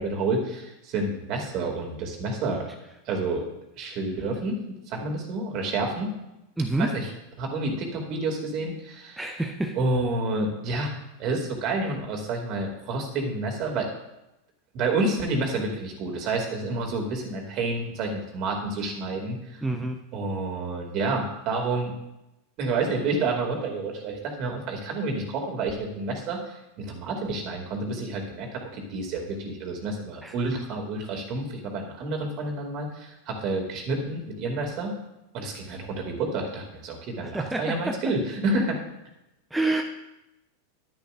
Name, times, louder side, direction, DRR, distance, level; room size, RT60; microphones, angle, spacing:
voice 1, 0.0-2.7 3.1-3.4 3.8-6.1 6.8-7.1 7.4-9.2 9.8-10.9 11.2-13.9 14.7-19.4 20.1-21.9 22.6-34.9 35.3-38.8, right 2 dB, 45° right, 2 dB, 2.4 m, -29 dB
voice 2, 6.6-6.9 9.2-9.8 19.6-20.0 30.2-30.3 37.2-38.0 39.5-39.8, right 2 dB, 5° right, 3 dB, 0.8 m, -27 dB
11.0 x 10.5 x 2.5 m, 0.91 s
figure-of-eight pair, 90°, 0 cm